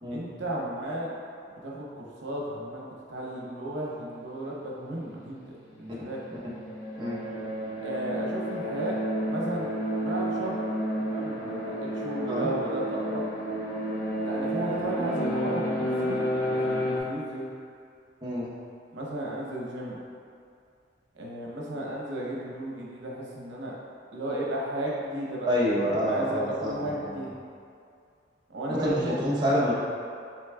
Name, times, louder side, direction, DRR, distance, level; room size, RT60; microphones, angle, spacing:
voice 1, 0.1-1.1 1.6-6.2 7.8-9.0 9.2-9.7 10.0-10.6 11.0-13.3 14.2-17.5 18.9-20.0 21.1-23.7 24.1-25.5 25.8-27.3 28.5-29.2, right 1 dB, 80° right, -4 dB, 0.7 m, -34 dB
sound 1, 5.8-17.0, equal, 85° left, 0.9 m, -31 dB
voice 2, 25.5-27.3 28.7-29.7, equal, 25° right, -8 dB, 0.8 m, -27 dB
6.8 x 3.1 x 2.3 m, 2.4 s
head